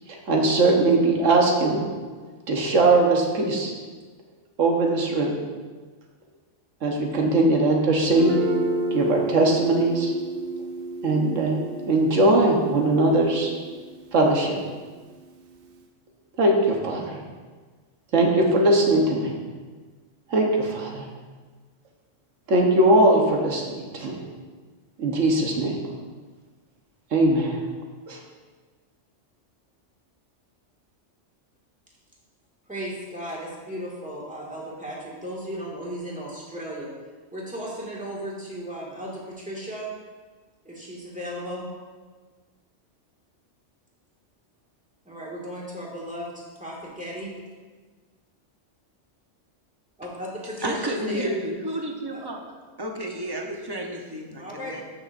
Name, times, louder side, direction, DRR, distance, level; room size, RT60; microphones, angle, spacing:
voice 1, 0.1-1.8 2.5-3.7 4.6-5.4 6.8-8.4 8.9-10.1 11.0-11.6 11.9-13.5 14.1-14.6 16.4-17.2 18.1-19.3 20.3-21.1 22.5-24.2 25.0-25.8 27.1-27.6 28.1-28.2, right 2 dB, 90° right, 0 dB, 1.5 m, -20 dB
Guitar, 8.1-15.8, right 2 dB, 55° right, 0.8 m, -32 dB
voice 2, 32.7-36.9 37.3-39.9 40.6-41.7 45.0-47.3 50.0-51.3 52.1-52.3 54.4-54.8, equal, 5° right, -5 dB, 1.9 m, -35 dB
voice 3, 50.6-52.4 52.8-54.8, right 1 dB, 20° right, 1 dB, 0.8 m, -31 dB
13.5 x 6.1 x 2.6 m, 1.4 s
omnidirectional pair, 1.3 m